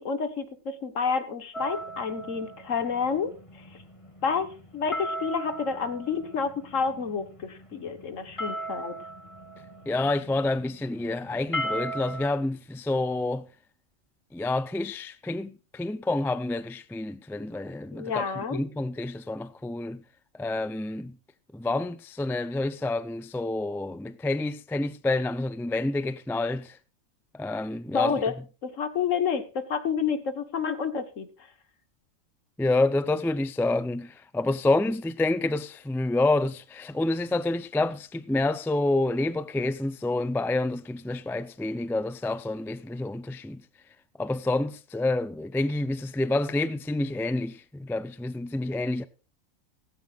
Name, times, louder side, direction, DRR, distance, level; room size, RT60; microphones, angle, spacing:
voice 1, 0.0-3.6 4.2-9.0 17.9-18.6 27.9-28.4 28.6-31.3, left 6 dB, 70° left, 1.8 m, -29 dB
sound 1, 1.5-12.3, right 1 dB, 25° left, 2.4 m, -38 dB
voice 2, 9.9-13.5 14.3-20.0 20.4-21.1 21.5-26.8 27.3-28.3 32.6-43.6 44.2-49.0, left 2 dB, 5° left, 0.3 m, -28 dB
16.5 x 15.5 x 2.5 m
omnidirectional pair, 1.4 m